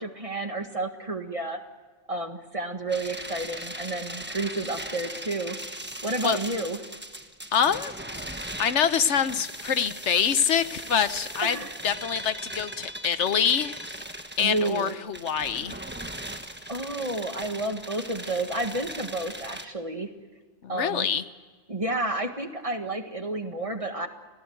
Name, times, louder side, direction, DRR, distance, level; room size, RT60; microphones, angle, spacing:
voice 1, 0.0-1.6 2.1-5.6 6.0-6.8 11.4-11.8 14.4-14.9 16.7-20.1 20.7-21.1 21.7-24.1, right 2 dB, 30° right, 6 dB, 1.7 m, -30 dB
sound 1, 2.9-19.6, right 1 dB, 10° right, 1.3 m, -39 dB
voice 2, 7.5-7.9 8.6-11.6 11.8-13.8 14.4-15.7 20.6-21.2, left 7 dB, 75° left, 13 dB, 1.2 m, -25 dB
28.5 x 17.5 x 8.0 m, 1.5 s
omnidirectional pair, 1.2 m